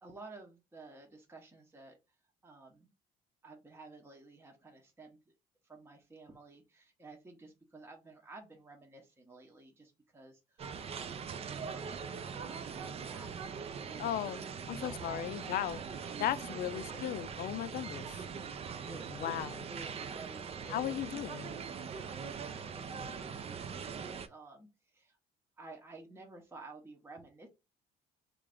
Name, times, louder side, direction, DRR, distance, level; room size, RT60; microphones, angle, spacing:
voice 1, 0.0-2.0 2.4-2.9 3.4-5.2 5.6-13.4 13.7-15.7 16.7-17.0 18.8-19.4 19.7-21.8 22.5-25.2 25.6-27.5, right 3 dB, 15° right, 0.8 m, -53 dB
sound 1, 10.6-24.3, right 6 dB, 35° right, 0.4 m, -42 dB
voice 2, 14.0-15.8 16.2-18.1 19.1-19.6 20.7-21.5, left 12 dB, 60° left, 0.4 m, -36 dB
3.3 x 2.5 x 3.4 m
cardioid pair, 110°, 17 cm